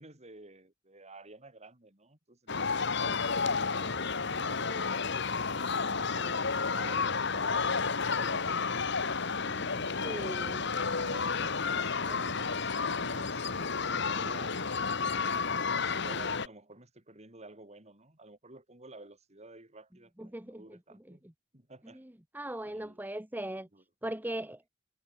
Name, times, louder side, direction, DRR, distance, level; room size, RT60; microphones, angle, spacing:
voice 1, 0.0-3.2 3.5-5.1 5.8-8.7 9.3-15.3 15.8-21.2 21.5-22.0 22.6-23.0 23.7-23.8, right 2 dB, 35° right, 4.5 m, -52 dB
sound 1, 2.5-16.5, left 5 dB, 65° left, 2.0 m, -31 dB
voice 2, 10.0-10.6 20.2-20.8 21.1-21.2 21.9-23.7 24.0-24.7, right 1 dB, 10° right, 1.3 m, -39 dB
head